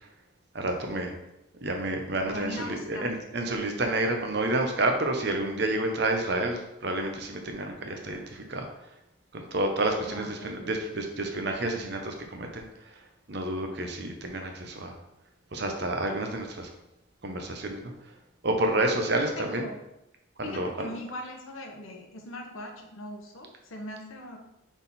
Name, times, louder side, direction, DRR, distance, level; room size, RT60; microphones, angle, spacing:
voice 1, 0.5-1.1 1.6-8.7 9.3-12.7 13.3-14.9 15.5-16.7 17.2-17.9 18.4-19.6 20.4-20.9, right 2 dB, 55° right, 3 dB, 0.9 m, -29 dB
voice 2, 2.3-3.1 10.1-10.9 19.4-19.8 20.4-24.4, left 1 dB, 80° left, 2 dB, 1.1 m, -40 dB
6.2 x 3.7 x 4.2 m, 0.88 s
head